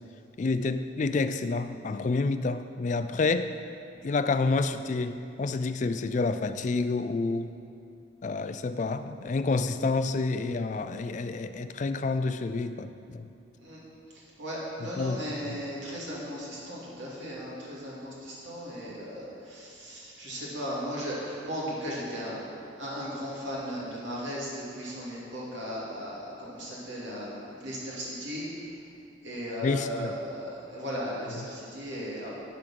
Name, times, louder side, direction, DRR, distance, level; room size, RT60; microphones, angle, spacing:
voice 1, 0.4-3.5 4.0-7.5 8.2-13.3 14.8-15.2 15.5-15.6 29.6-30.1 31.4-31.5, left 3 dB, 40° left, 10 dB, 0.3 m, -29 dB
voice 2, 14.1-22.4 22.8-28.5 29.2-32.3, equal, 70° right, -6 dB, 2.5 m, -36 dB
11.0 x 5.1 x 6.0 m, 2.6 s
head